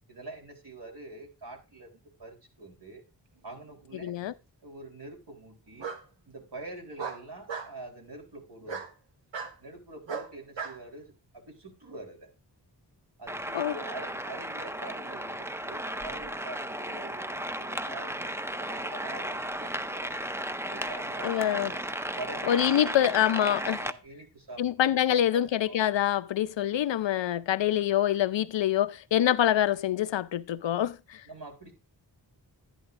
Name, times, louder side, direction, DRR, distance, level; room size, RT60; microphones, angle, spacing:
voice 1, 0.1-3.0 3.4-4.2 4.6-5.9 6.3-8.9 9.6-12.3 13.2-20.2 20.6-21.9 22.1-23.1 23.4-25.8 31.2-31.7, right 2 dB, 65° right, 3.7 m, -45 dB
Bark, 3.6-4.3 5.8-6.0 7.0-7.7 8.7-8.9 9.3-9.5 10.1-10.8, right 5 dB, 85° right, 1.4 m, -36 dB
voice 2, 4.0-4.3 13.5-13.7 21.2-21.7 22.5-23.8 24.6-31.2, left 11 dB, 85° left, 0.6 m, -25 dB
sound 1, 13.3-23.9, right 1 dB, 5° right, 0.6 m, -35 dB
11.5 x 10.5 x 2.5 m
cardioid pair, 50°, 44 cm